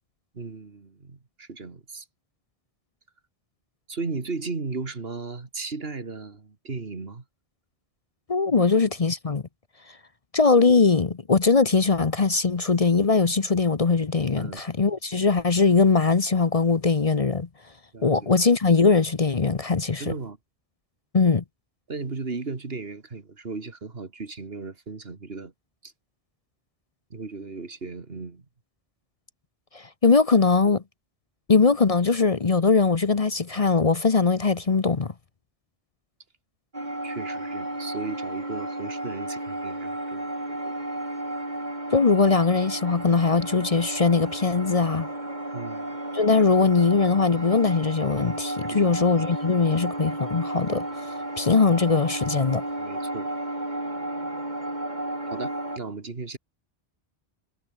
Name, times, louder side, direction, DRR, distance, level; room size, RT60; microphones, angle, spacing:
voice 1, 0.3-2.1 3.9-7.2 8.5-8.7 14.4-14.6 17.9-18.3 20.0-20.4 21.9-25.5 25.8-25.9 27.1-28.4 37.0-40.7 45.5-45.9 48.6-49.0 52.8-53.3 55.3-56.4, right 4 dB, 75° right, 2.4 m, -36 dB
voice 2, 8.3-9.4 10.3-17.5 18.0-20.1 21.1-21.4 29.7-30.8 31.5-35.1 41.9-45.1 46.1-52.6, left 4 dB, 35° left, 0.9 m, -21 dB
sound 1, 36.7-55.8, right 1 dB, 45° right, 5.3 m, -33 dB
omnidirectional pair, 1.0 m